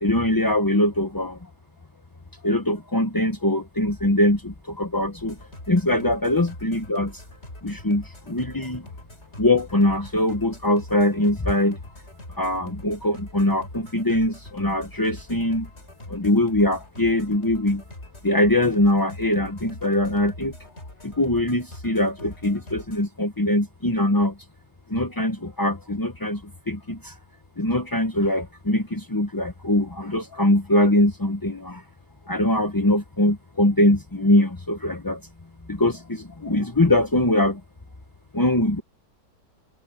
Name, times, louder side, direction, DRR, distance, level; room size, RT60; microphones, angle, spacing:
voice 1, 0.0-1.5 2.4-5.4 5.7-7.2 7.6-8.9 9.4-11.8 12.4-15.7 16.1-17.8 18.2-20.5 21.0-24.4 24.9-27.2 27.6-31.8 32.3-35.2 35.7-37.6 38.3-38.8, left 1 dB, 15° left, 0.8 m, -22 dB
sound 1, 5.2-23.0, left 1 dB, 35° left, 6.8 m, -43 dB
omnidirectional pair, 1.9 m